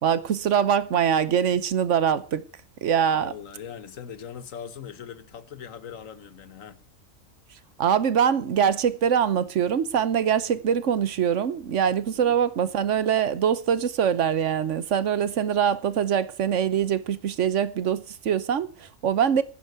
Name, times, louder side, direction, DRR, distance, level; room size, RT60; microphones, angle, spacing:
voice 1, 0.0-2.4 2.8-3.3 7.8-19.4, right 8 dB, 70° right, 1.2 m, -23 dB
voice 2, 3.1-6.8 12.1-12.4, left 8 dB, 80° left, 1.5 m, -41 dB
11.5 x 9.2 x 8.1 m
omnidirectional pair, 1.3 m